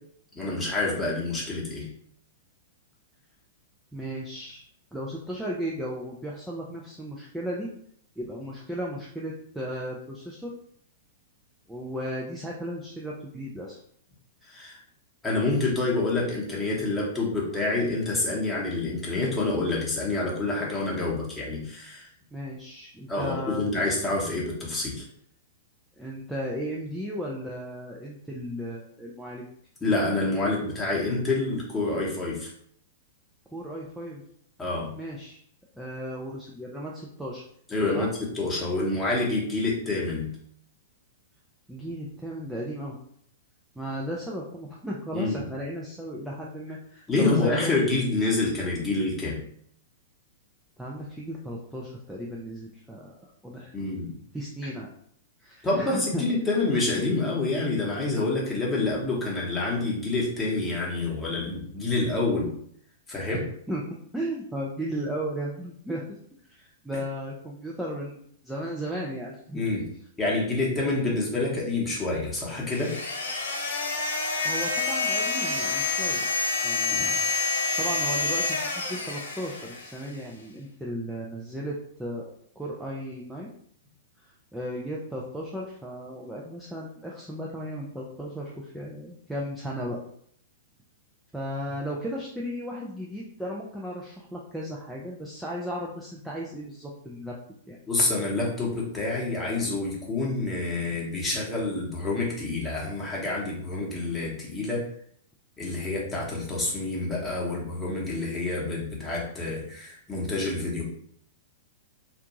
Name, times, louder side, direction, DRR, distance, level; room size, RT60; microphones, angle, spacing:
voice 1, 0.3-1.9 14.5-14.8 15.2-22.1 23.1-25.0 29.8-32.5 34.6-34.9 37.7-38.1 38.3-40.3 45.1-45.4 47.1-49.4 53.7-54.2 55.6-62.5 63.1-63.4 69.5-69.9 70.2-72.9 76.9-77.2 97.9-104.8 105.6-110.8, left 2 dB, 15° left, -4 dB, 1.0 m, -27 dB
voice 2, 3.9-4.6 4.9-7.7 8.2-10.5 11.7-13.8 22.3-23.6 26.0-29.4 33.5-34.2 35.0-35.4 35.7-37.4 37.9-38.1 41.7-43.0 43.8-47.7 50.8-53.7 54.3-54.9 55.4-56.3 63.3-63.4 63.7-66.0 66.4-69.6 71.0-71.1 74.4-76.2 76.6-82.3 82.6-83.5 84.2-90.0 91.3-97.4 97.7-97.8, equal, 5° right, -4 dB, 0.4 m, -35 dB
sound 1, 72.7-80.1, left 3 dB, 70° left, 0.5 m, -28 dB
2.5 x 2.2 x 2.9 m, 0.65 s
figure-of-eight pair, 105°, 0 cm